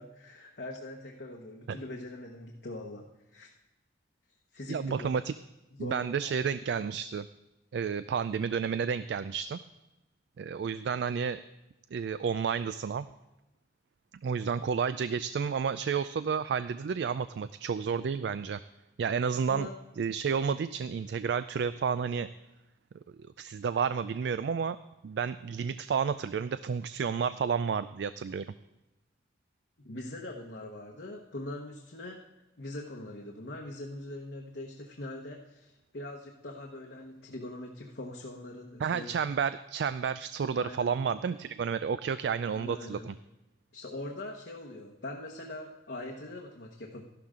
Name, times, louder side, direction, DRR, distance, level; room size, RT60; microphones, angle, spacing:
voice 1, 0.0-3.5 4.5-5.2 5.7-6.3 19.5-19.8 29.8-32.2 32.6-39.1 40.5-41.0 42.4-43.1 43.7-47.0, left 1 dB, 70° left, 0 dB, 1.1 m, -42 dB
voice 2, 4.7-5.3 5.8-7.3 7.7-9.6 10.4-11.4 11.9-13.1 14.2-18.6 19.0-19.7 20.0-22.3 23.2-24.8 25.0-28.5 38.8-43.1, right 6 dB, 70° right, 13 dB, 0.3 m, -31 dB
13.0 x 11.5 x 3.7 m, 1.0 s
head